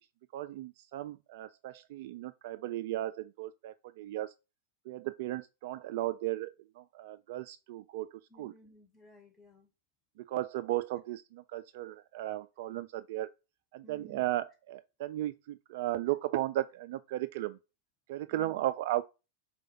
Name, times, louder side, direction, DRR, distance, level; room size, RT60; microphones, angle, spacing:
voice 1, 0.3-4.3 4.9-6.5 6.8-8.5 10.3-13.3 13.7-17.6 18.1-19.0, right 14 dB, 50° right, 0.3 m, -35 dB
voice 2, 8.3-9.7 13.8-14.3 18.3-18.6, left 1 dB, 10° left, 1.8 m, -57 dB
4.8 x 4.2 x 5.9 m
figure-of-eight pair, 90°, 0 cm